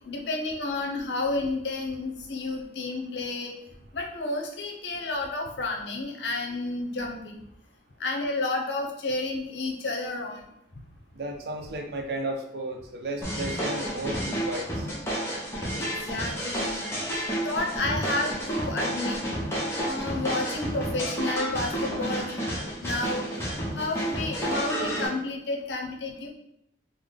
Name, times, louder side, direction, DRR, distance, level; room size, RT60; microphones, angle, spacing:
voice 1, 0.0-3.5 3.9-7.4 8.0-10.4 15.7-16.9 17.4-19.2 19.8-22.5 22.8-23.5 23.8-26.3, left 2 dB, 80° left, 2 dB, 0.6 m, -31 dB
voice 2, 11.1-14.9, right 1 dB, 65° right, 3 dB, 0.5 m, -33 dB
sound 1, 13.2-25.1, equal, 15° left, 0.7 m, -30 dB
3.8 x 2.0 x 3.3 m, 0.78 s
head